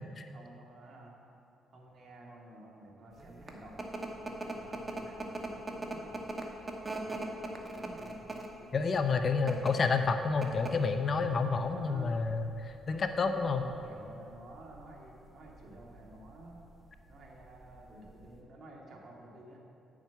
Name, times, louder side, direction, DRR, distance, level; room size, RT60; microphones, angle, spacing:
voice 1, 0.3-1.1 1.7-6.3 6.9-8.5 11.2-12.2 13.1-16.6 17.1-19.6, right 1 dB, 50° right, -2 dB, 2.0 m, -52 dB
sound 1, 3.2-18.4, right 2 dB, 25° right, 1.2 m, -42 dB
voice 2, 8.7-13.6, left 4 dB, 45° left, 7 dB, 0.6 m, -29 dB
9.1 x 7.3 x 5.7 m, 2.7 s
cardioid pair, 90°, 0 cm